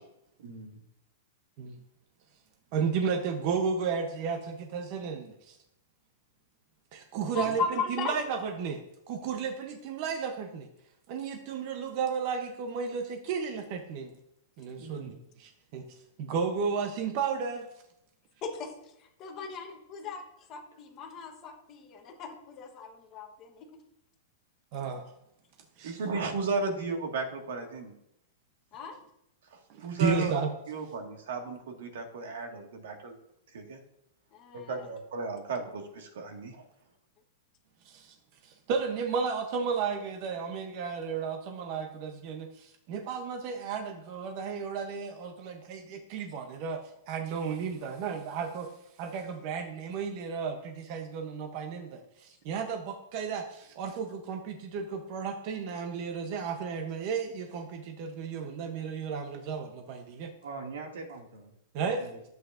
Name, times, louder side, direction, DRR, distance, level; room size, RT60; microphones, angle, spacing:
voice 1, 0.4-0.8 7.4-7.6 14.8-15.1 60.4-61.5 61.8-62.2, right 4 dB, 85° right, 1 dB, 2.1 m, -43 dB
voice 2, 2.7-5.6 6.9-7.6 7.9-8.8 9.1-10.7 11.1-14.1 14.6-15.1 15.4-17.7 24.7-25.1 25.8-26.0 29.7-30.5 37.8-38.2 38.4-46.8 47.1-48.7 49.0-60.3 61.7-62.1, right 6 dB, 35° right, 4 dB, 0.7 m, -33 dB
voice 3, 7.3-8.2 18.4-20.2 20.5-23.7 28.7-28.9 34.3-34.9, left 5 dB, 20° left, 3 dB, 1.0 m, -37 dB
voice 4, 25.8-27.9 29.5-30.3 30.7-33.2 33.5-33.8 34.5-36.6, right 4 dB, 70° right, 4 dB, 1.7 m, -34 dB
13.0 x 8.0 x 2.5 m, 0.79 s
supercardioid pair, 180°, 0 cm